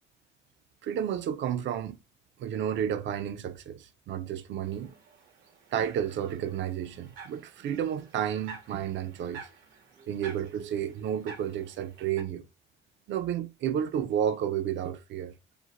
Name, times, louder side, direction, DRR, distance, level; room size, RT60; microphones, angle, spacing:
voice 1, 0.8-2.0 2.4-4.9 5.7-9.5 10.1-12.5 13.1-15.3, right 9 dB, 70° right, 0.4 m, -31 dB
sound 1, 4.6-12.2, right 5 dB, 90° right, 0.8 m, -49 dB
2.6 x 2.0 x 2.9 m
cardioid pair, 90°, 20 cm